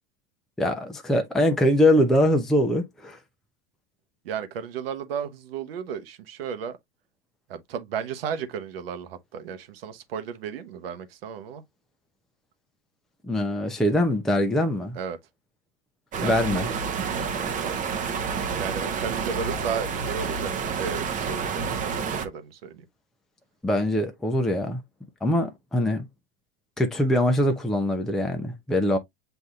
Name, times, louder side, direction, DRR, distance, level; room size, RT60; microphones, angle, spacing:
voice 1, 0.6-3.2 13.2-15.0 16.2-16.7 23.6-24.8 25.2-26.1 26.8-29.0, left 1 dB, ahead, 0.6 m, -23 dB
voice 2, 4.2-6.8 7.5-11.6 14.9-15.2 16.2-16.3 16.7-17.0 17.3-18.2 18.6-20.5 20.8-22.8, right 7 dB, 70° right, 0.9 m, -34 dB
sound 1, 16.1-22.3, right 5 dB, 25° right, 0.8 m, -29 dB
7.8 x 2.7 x 2.3 m
hypercardioid pair, 105°, 30 cm